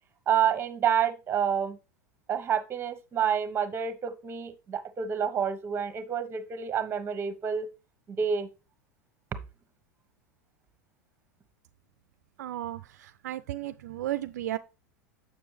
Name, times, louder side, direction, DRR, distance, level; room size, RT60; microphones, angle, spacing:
voice 1, 0.3-1.8 2.3-7.7 8.1-8.5, right 8 dB, 25° right, 1.2 m, -28 dB
voice 2, 12.4-14.6, right 13 dB, 70° right, 0.4 m, -34 dB
6.9 x 6.8 x 3.3 m
hypercardioid pair, 90°, 9 cm